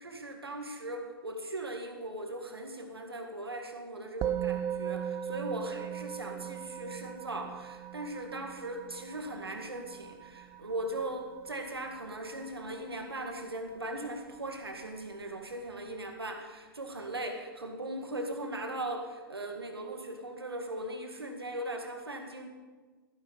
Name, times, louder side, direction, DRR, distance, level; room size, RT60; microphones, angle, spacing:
voice 1, 0.0-22.5, right 1 dB, 85° right, 4 dB, 1.9 m, -39 dB
Musical instrument, 4.2-13.7, right 10 dB, 25° right, 0.6 m, -39 dB
13.5 x 12.5 x 4.1 m, 1.3 s
figure-of-eight pair, 105°, 12 cm